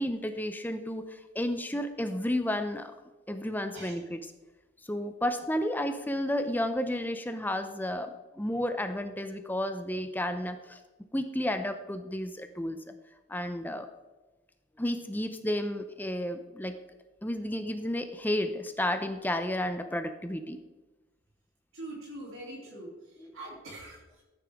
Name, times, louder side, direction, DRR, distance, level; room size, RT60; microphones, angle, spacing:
voice 1, 0.0-2.9 3.3-4.2 4.9-10.8 11.1-12.9 13.3-13.9 14.8-16.8 17.2-20.6 22.7-22.8 23.2-23.3, left 1 dB, 10° left, 8 dB, 0.6 m, -32 dB
voice 2, 21.7-24.2, right 1 dB, 85° right, -4 dB, 3.1 m, -44 dB
13.5 x 9.1 x 3.6 m, 1.1 s
head